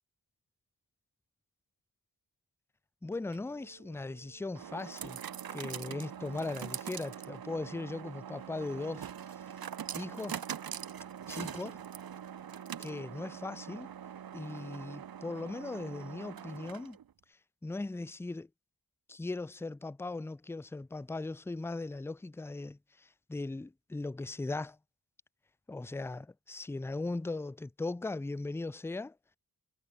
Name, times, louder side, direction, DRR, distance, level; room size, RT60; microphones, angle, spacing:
voice 1, 3.0-5.2 5.5-9.1 9.9-10.4 11.3-11.8 12.8-13.9 14.3-17.0 17.6-18.5 19.1-24.8 25.7-29.1, left 2 dB, 5° left, 0.4 m, -38 dB
sound 1, 3.1-17.1, right 9 dB, 60° right, 0.8 m, -43 dB
wide cardioid pair, 105°, 40 cm